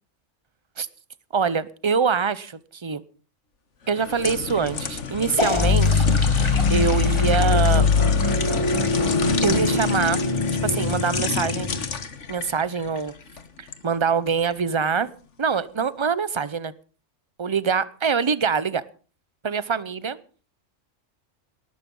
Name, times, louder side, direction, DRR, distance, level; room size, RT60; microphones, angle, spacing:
voice 1, 1.3-3.0 3.9-6.1 6.7-7.9 9.4-10.2 10.6-11.7 12.3-13.1 13.6-15.1 15.4-16.7 17.4-18.8 19.4-20.2, right 6 dB, 25° right, 18 dB, 0.7 m, -24 dB
sound 1, 3.9-13.8 14.3-14.4, left 5 dB, 65° left, 1.8 m, -30 dB
sound 2, 5.4-12.0, left 4 dB, 20° left, 2.2 m, -22 dB
19.0 x 13.0 x 5.5 m, 0.40 s
omnidirectional pair, 1.4 m